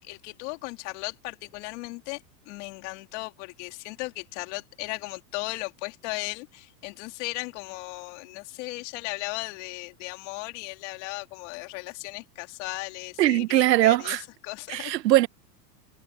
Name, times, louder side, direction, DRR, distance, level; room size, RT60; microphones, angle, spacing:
voice 1, 0.0-14.2 14.4-15.0, left 25 dB, 45° left, 3.2 m, -36 dB
voice 2, 13.2-14.2 14.7-15.3, right 15 dB, 80° right, 1.1 m, -21 dB
supercardioid pair, 160°, 49 cm